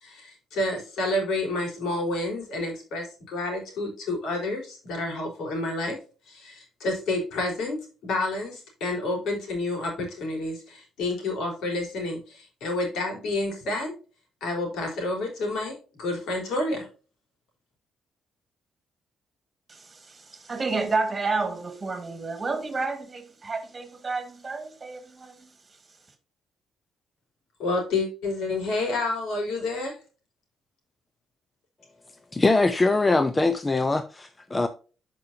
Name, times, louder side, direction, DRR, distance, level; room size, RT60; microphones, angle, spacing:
voice 1, 0.0-6.0 6.3-13.9 14.4-16.9 27.6-29.9, left 2 dB, 80° left, 3.7 m, -29 dB
voice 2, 19.7-25.5, right 3 dB, 30° right, 1.9 m, -30 dB
voice 3, 32.3-34.7, left 3 dB, 20° left, 0.6 m, -22 dB
11.5 x 5.2 x 2.7 m
cardioid pair, 90°, 0 cm